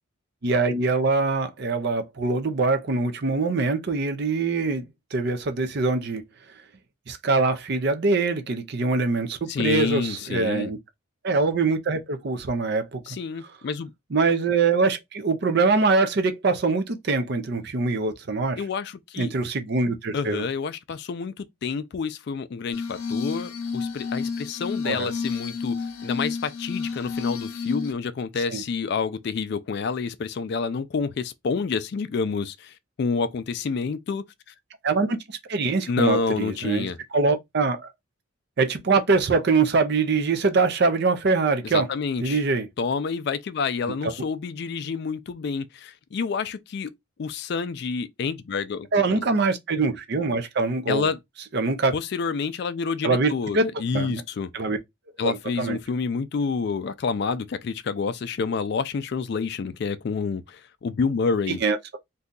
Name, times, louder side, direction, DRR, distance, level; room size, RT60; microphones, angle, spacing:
voice 1, 0.4-6.2 7.1-10.8 11.2-13.0 14.1-18.6 19.2-20.4 24.8-25.1 28.5-28.6 34.8-37.9 38.6-41.9 42.2-42.7 44.0-44.1 48.9-51.1 51.5-51.9 53.0-53.6 53.9-54.2 54.5-54.8 55.2-55.8 61.5-61.8, right 3 dB, 50° right, 0.5 m, -23 dB
voice 2, 9.5-10.7 13.1-13.9 18.6-19.3 20.1-34.2 35.9-37.0 41.6-42.4 42.8-46.9 47.2-49.2 50.9-51.2 51.9-54.5 55.2-61.6, left 5 dB, 50° left, 0.3 m, -28 dB
Glass, 22.7-27.9, left 5 dB, 85° left, 0.7 m, -30 dB
2.7 x 2.3 x 3.7 m
head